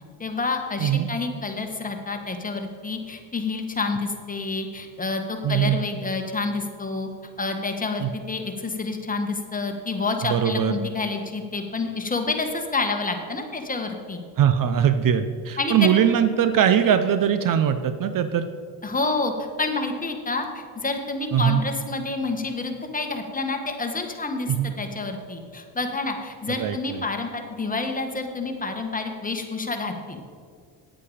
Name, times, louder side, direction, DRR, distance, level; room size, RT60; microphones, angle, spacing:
voice 1, 0.2-7.1 7.4-14.2 15.6-15.9 18.8-30.2, left 3 dB, 20° left, 4 dB, 1.5 m, -28 dB
voice 2, 5.4-5.8 8.0-8.1 10.3-10.7 14.4-18.5 21.3-21.6 24.5-24.7 26.6-26.8, right 9 dB, 50° right, 10 dB, 0.7 m, -21 dB
10.0 x 8.3 x 5.0 m, 2.1 s
supercardioid pair, 85°, 44 cm